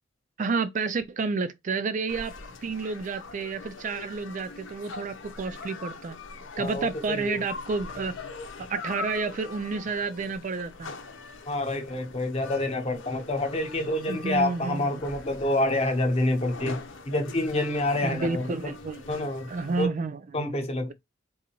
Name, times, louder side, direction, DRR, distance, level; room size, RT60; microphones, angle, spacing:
voice 1, 0.4-2.3 2.6-6.2 6.6-8.2 8.7-10.9 14.1-14.8 18.0-20.5, right 4 dB, 40° right, 0.3 m, -30 dB
sound 1, 2.1-19.9, left 4 dB, 70° left, 0.9 m, -42 dB
voice 2, 6.6-7.4 11.5-16.8 17.1-18.7 19.1-19.5 19.8-19.9 20.3-20.9, left 1 dB, 30° left, 0.8 m, -27 dB
3.9 x 2.6 x 2.8 m
head